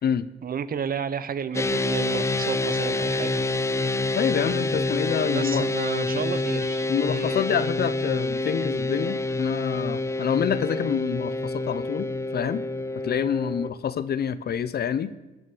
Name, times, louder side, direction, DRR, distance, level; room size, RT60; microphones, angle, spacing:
voice 1, 0.4-3.4 5.2-7.4, right 7 dB, 50° right, 15 dB, 0.8 m, -32 dB
sound 1, 1.5-13.7, left 2 dB, 15° left, 0.4 m, -27 dB
voice 2, 4.2-5.7 6.9-12.6 13.0-15.1, left 8 dB, 55° left, 15 dB, 0.7 m, -27 dB
19.0 x 6.5 x 6.1 m, 1.1 s
cardioid pair, 90°, 20 cm